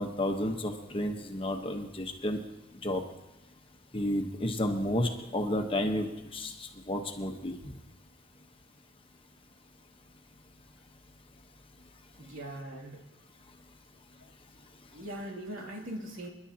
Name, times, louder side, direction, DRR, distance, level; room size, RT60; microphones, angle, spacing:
voice 1, 0.0-2.4 2.8-3.0 3.9-6.1 6.3-7.5, left 1 dB, 25° left, 4 dB, 1.1 m, -31 dB
voice 2, 12.2-13.0 14.9-16.3, right 1 dB, 80° right, -1 dB, 2.7 m, -40 dB
29.0 x 11.0 x 2.9 m, 0.99 s
head